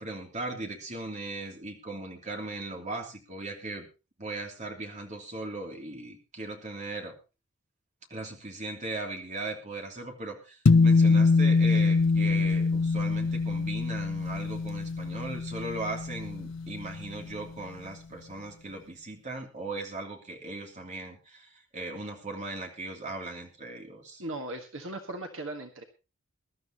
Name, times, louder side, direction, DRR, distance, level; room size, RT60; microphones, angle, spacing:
voice 1, 0.0-3.9 4.2-7.1 8.1-24.2, right 2 dB, 35° right, 1 dB, 2.9 m, -38 dB
sound 1, 10.7-17.2, left 4 dB, 60° left, 0.6 m, -24 dB
voice 2, 24.2-25.8, right 2 dB, 65° right, 4 dB, 1.6 m, -38 dB
22.0 x 12.0 x 2.9 m, 0.30 s
head